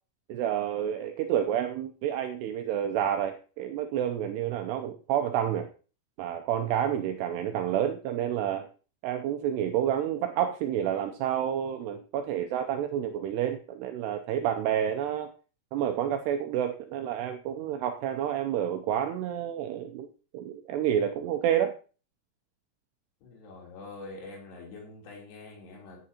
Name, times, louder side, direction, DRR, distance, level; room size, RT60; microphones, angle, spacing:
voice 1, 0.3-5.7 6.2-8.7 9.0-15.3 15.7-20.1 20.3-21.7, right 10 dB, 85° right, 6 dB, 2.3 m, -29 dB
voice 2, 23.2-26.0, left 3 dB, 60° left, -1 dB, 5.2 m, -45 dB
15.0 x 9.9 x 2.9 m, 0.36 s
omnidirectional pair, 5.6 m